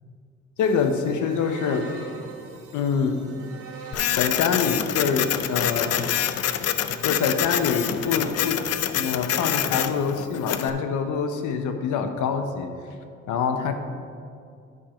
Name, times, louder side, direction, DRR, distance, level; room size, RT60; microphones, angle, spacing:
voice 1, 0.6-1.9 2.7-3.2 4.2-6.1 6.6-6.7 7.0-8.7 8.9-12.7 13.3-13.7, left 6 dB, 80° left, 7 dB, 0.8 m, -25 dB
sound 1, 0.6-8.5, right 4 dB, 80° right, 1.4 m, -43 dB
Printer, 3.9-10.7, left 10 dB, 55° left, 0.5 m, -26 dB
9.8 x 4.4 x 5.1 m, 2.3 s
cardioid pair, 90°, 30 cm